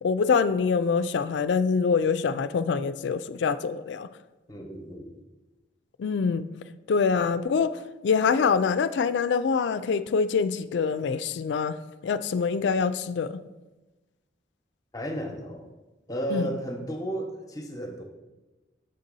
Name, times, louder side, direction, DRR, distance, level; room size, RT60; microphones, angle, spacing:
voice 1, 0.0-4.1 6.0-6.4 6.9-7.7 8.0-11.8 12.0-13.4 16.3-16.5, left 5 dB, 80° left, 13 dB, 0.3 m, -25 dB
voice 2, 4.5-5.1 14.9-15.7 16.1-18.0, right 1 dB, 20° left, 3 dB, 0.8 m, -33 dB
6.7 x 3.9 x 5.3 m, 1.1 s
head